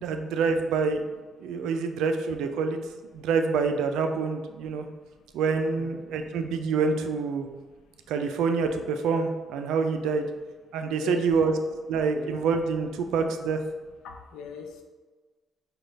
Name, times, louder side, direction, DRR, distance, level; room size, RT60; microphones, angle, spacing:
voice 1, 0.0-1.0 1.4-2.8 3.1-4.9 5.3-7.5 8.1-10.3 10.7-11.5 11.9-13.6, right 5 dB, 90° right, 6 dB, 0.3 m, -26 dB
voice 2, 11.0-11.7 12.1-12.3 14.0-14.7, left 5 dB, 90° left, 3 dB, 0.5 m, -39 dB
5.0 x 2.3 x 3.2 m, 1.3 s
cardioid pair, 90°, 0 cm